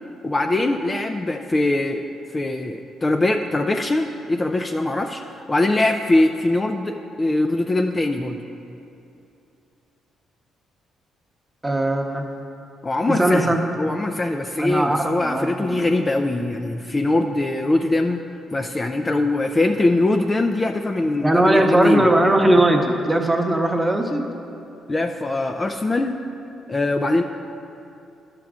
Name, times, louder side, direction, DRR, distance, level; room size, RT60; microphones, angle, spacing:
voice 1, 0.2-2.0 2.3-8.4 12.8-18.2 18.5-22.1 24.9-26.2 26.7-27.2, left 2 dB, 25° left, 5 dB, 0.4 m, -22 dB
voice 2, 11.6-12.2 13.1-13.6 14.6-15.8 21.2-24.2, right 1 dB, 10° right, 3 dB, 0.9 m, -19 dB
12.0 x 6.0 x 3.7 m, 2.7 s
cardioid pair, 90°, 0 cm